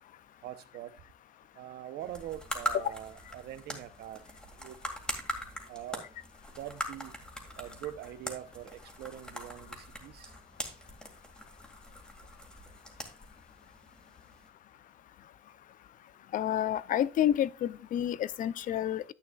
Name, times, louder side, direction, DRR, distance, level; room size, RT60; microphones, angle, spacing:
voice 1, 0.4-0.9 1.6-4.2 4.6-4.8 5.7-6.0 6.6-7.2 7.6-10.3, right 12 dB, 75° right, 0.8 m, -43 dB
sound 1, 2.0-14.5, equal, 5° left, 2.0 m, -42 dB
voice 2, 16.3-19.0, left 11 dB, 50° left, 0.4 m, -29 dB
10.5 x 8.1 x 2.3 m
cardioid pair, 110°, 17 cm